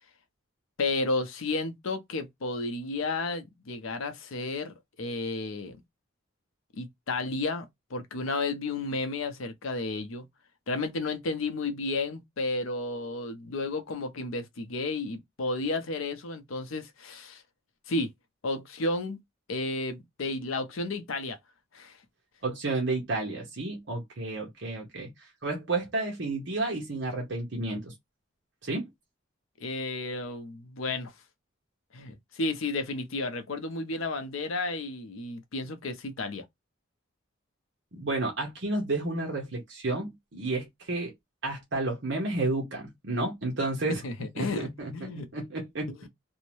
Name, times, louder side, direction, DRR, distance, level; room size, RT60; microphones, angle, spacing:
voice 1, 0.8-5.8 6.7-10.2 10.7-17.4 17.9-18.1 18.4-19.2 19.5-21.4 21.7-22.0 29.6-31.1 31.9-36.4 43.9-45.3 46.0-46.1, left 3 dB, 85° left, 0.6 m, -32 dB
voice 2, 22.4-27.9 28.6-28.8 37.9-41.1 41.4-44.0 44.4-45.9, right 2 dB, 60° right, 0.8 m, -31 dB
2.7 x 2.0 x 3.0 m
head